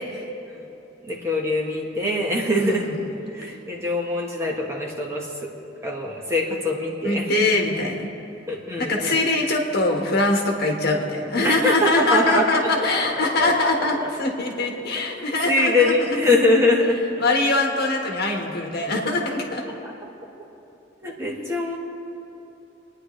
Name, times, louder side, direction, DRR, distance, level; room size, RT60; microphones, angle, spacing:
voice 1, 1.0-2.9 3.2-5.5 5.8-7.5 8.5-9.2 11.4-12.9 13.2-14.1 15.1-17.0 19.6-19.7 21.0-21.8, left 2 dB, 15° right, -2 dB, 1.4 m, -23 dB
voice 2, 2.5-3.0 3.5-3.6 7.0-8.1 8.8-15.9 17.2-19.6, left 2 dB, 55° left, 0 dB, 1.6 m, -23 dB
28.0 x 9.9 x 3.3 m, 2.9 s
head